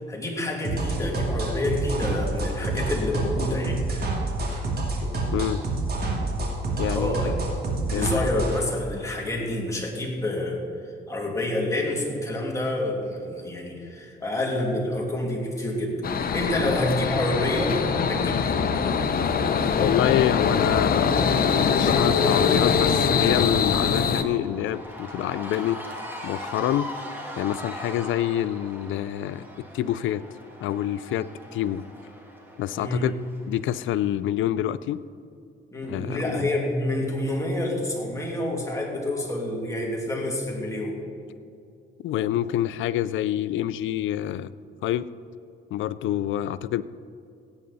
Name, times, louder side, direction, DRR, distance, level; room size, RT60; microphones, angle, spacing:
voice 1, 0.1-3.8 4.1-4.2 6.9-7.3 7.9-10.6 11.1-16.0 16.3-18.6 19.2-19.8 32.8-33.1 35.7-41.0, left 1 dB, 15° left, -1 dB, 2.6 m, -28 dB
sound 1, 0.6-8.6, right 2 dB, 50° right, 2.8 m, -27 dB
voice 2, 5.3-5.6 6.8-7.1 7.9-8.3 16.6-16.7 19.7-25.9 26.2-26.9 27.4-29.5 29.7-30.2 30.6-31.8 32.6-33.1 33.5-35.0 35.9-36.5 42.0-44.5 44.8-45.1 45.7-46.8, left 12 dB, 75° left, 16 dB, 0.4 m, -27 dB
sound 2, 16.0-24.2, left 6 dB, 50° left, 0.8 m, -23 dB
Cheering / Crowd, 19.8-34.2, equal, 10° right, 2.3 m, -42 dB
16.5 x 8.9 x 4.1 m, 2.5 s
cardioid pair, 90°, 20 cm